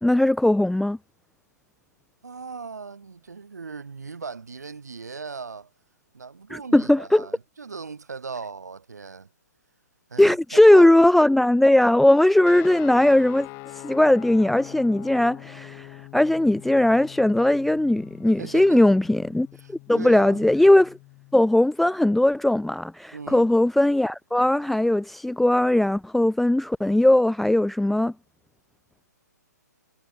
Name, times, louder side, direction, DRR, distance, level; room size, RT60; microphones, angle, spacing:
voice 1, 0.0-1.0 6.5-7.3 10.2-21.0 21.3-28.1, left 1 dB, ahead, 0.3 m, -19 dB
voice 2, 2.2-5.7 6.1-9.3 10.1-11.0 18.4-18.9 19.6-20.4 23.1-23.5, right 5 dB, 65° right, 4.0 m, -38 dB
sound 1, 12.4-21.4, left 27 dB, 25° left, 3.4 m, -44 dB
figure-of-eight pair, 125°, 10 cm